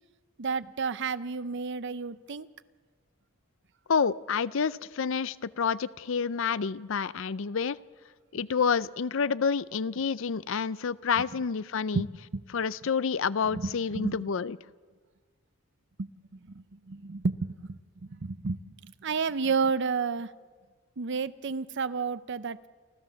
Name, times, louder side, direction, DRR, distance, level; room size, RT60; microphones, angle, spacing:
voice 1, 0.4-2.5 11.9-12.1 12.3-12.4 13.5-13.7 14.0-14.3 16.0-16.1 16.5-20.3 21.0-22.7, right 4 dB, 60° right, 15 dB, 0.7 m, -31 dB
voice 2, 3.9-7.8 8.3-12.1 12.5-14.6, left 6 dB, 65° left, 18 dB, 0.5 m, -28 dB
29.0 x 13.5 x 7.0 m, 1.5 s
head